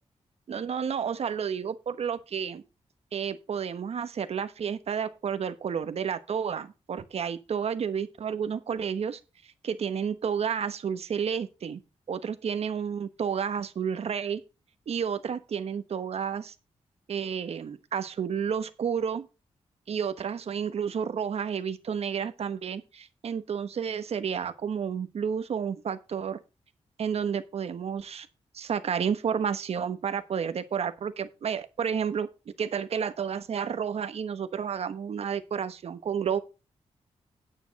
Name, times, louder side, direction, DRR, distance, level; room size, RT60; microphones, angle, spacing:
voice 1, 0.5-2.6 3.1-9.2 9.6-11.8 12.1-14.4 14.9-16.5 17.1-19.3 19.9-26.4 27.0-28.3 28.5-32.3 32.6-36.4, right 7 dB, 65° right, 1.2 m, -31 dB
9.6 x 8.9 x 4.1 m
wide cardioid pair, 155°, 12 cm